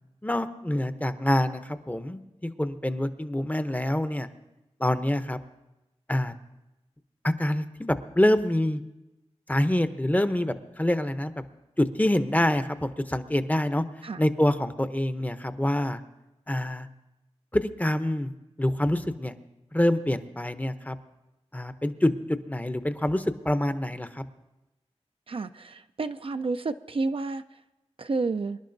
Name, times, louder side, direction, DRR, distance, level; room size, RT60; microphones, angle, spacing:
voice 1, 0.2-4.3 4.8-5.4 6.1-6.3 7.2-8.8 9.5-11.4 11.8-13.8 14.2-16.0 16.5-16.9 17.5-18.3 18.6-19.3 19.7-21.0 21.5-24.2, left 1 dB, 15° left, 10 dB, 0.7 m, -26 dB
voice 2, 25.3-27.4 28.0-28.6, right 3 dB, 55° right, 9 dB, 0.4 m, -30 dB
25.0 x 11.0 x 2.6 m, 0.96 s
wide cardioid pair, 60°, 11 cm